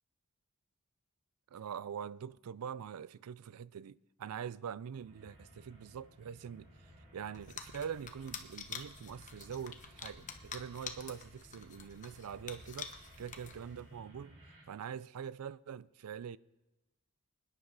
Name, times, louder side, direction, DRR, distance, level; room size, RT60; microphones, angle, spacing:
voice 1, 1.5-14.4 14.7-16.4, right 7 dB, 90° right, 0.4 m, -44 dB
sound 1, 5.0-14.6, equal, 30° right, 4.9 m, -58 dB
sound 2, 7.3-13.9, left 6 dB, 35° left, 1.0 m, -48 dB
25.5 x 9.9 x 4.0 m
head